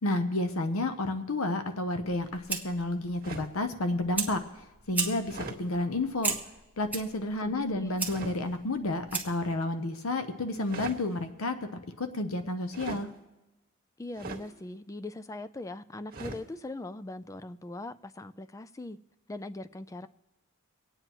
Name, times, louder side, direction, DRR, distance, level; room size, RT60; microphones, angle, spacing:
voice 1, 0.0-4.4 4.9-6.3 6.8-11.6 12.0-13.1, left 2 dB, 75° left, 0.8 m, -30 dB
Fire, 2.0-9.5, right 4 dB, 10° right, 1.1 m, -37 dB
sound 1, 3.2-3.6 5.2-5.6 8.0-8.4 10.5-11.0 12.7-13.1 14.1-14.5 16.1-16.4, right 3 dB, 45° right, 1.4 m, -40 dB
voice 2, 7.4-7.9 14.0-19.0 19.3-20.1, left 2 dB, 15° left, 0.3 m, -40 dB
25.5 x 9.0 x 3.0 m
head